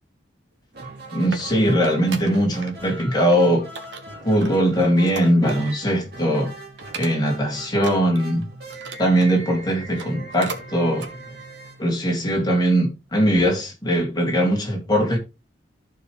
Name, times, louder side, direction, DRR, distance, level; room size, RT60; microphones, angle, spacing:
sound 1, 0.7-12.6, right 2 dB, 55° right, 2.6 m, -40 dB
sound 2, 0.8-2.7 3.0-3.4 3.8-5.9 6.2-6.4 6.8-7.4 7.8-9.4 9.8-10.7 11.0-11.1 11.7-11.8, right 4 dB, 70° right, 1.4 m, -38 dB
voice 1, 1.1-3.6 4.2-6.5 6.9-8.5 9.0-11.1 11.8-15.2, equal, 20° left, 2.4 m, -20 dB
14.0 x 4.8 x 3.2 m
head